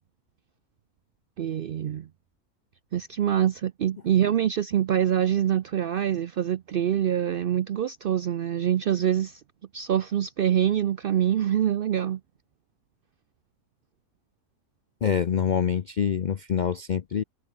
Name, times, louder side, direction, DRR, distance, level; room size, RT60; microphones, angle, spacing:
voice 1, 1.4-2.1 2.9-9.4 9.7-12.2, right 10 dB, 80° right, 0.4 m, -25 dB
voice 2, 15.0-17.2, left 7 dB, 80° left, 0.4 m, -25 dB
omnidirectional pair, 1.6 m